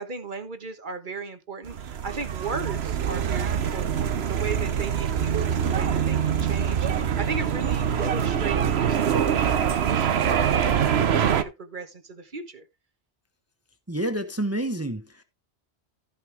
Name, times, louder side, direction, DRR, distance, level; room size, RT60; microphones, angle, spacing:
voice 1, 0.0-12.6, right 4 dB, 50° right, 1.3 m, -36 dB
sound 1, 1.7-11.4, right 8 dB, 70° right, 1.1 m, -24 dB
voice 2, 13.9-15.2, right 1 dB, 15° right, 0.9 m, -28 dB
14.5 x 5.6 x 3.4 m
omnidirectional pair, 1.1 m